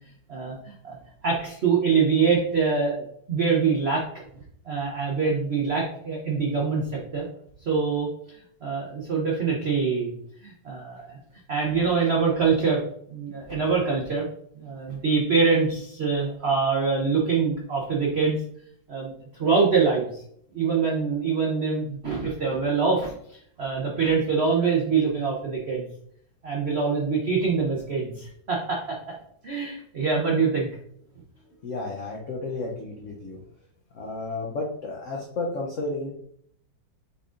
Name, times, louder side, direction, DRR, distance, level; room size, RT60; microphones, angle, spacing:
voice 1, 0.3-1.0 1.2-4.0 4.6-7.3 7.6-10.1 10.4-11.2 11.5-12.8 13.1-14.2 14.6-18.4 18.9-19.1 19.4-20.2 20.5-25.8 26.4-29.0 29.4-30.7, right 5 dB, 85° right, -2 dB, 0.5 m, -24 dB
voice 2, 31.6-33.4 33.9-36.1, left 2 dB, 85° left, -1 dB, 0.6 m, -32 dB
5.8 x 3.7 x 2.5 m, 0.67 s
omnidirectional pair, 2.2 m